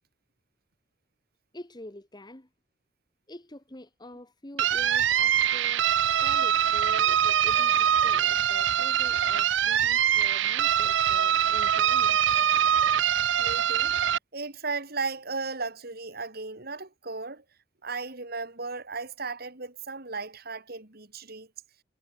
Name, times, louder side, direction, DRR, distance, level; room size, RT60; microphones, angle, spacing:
voice 1, 1.5-2.5 3.3-5.9 6.2-12.4, left 1 dB, 20° left, 1.6 m, -46 dB
sound 1, 4.6-14.2, right 9 dB, 70° right, 0.5 m, -23 dB
voice 2, 13.4-13.9 14.3-17.4 17.8-21.5, right 4 dB, 55° right, 3.4 m, -35 dB
head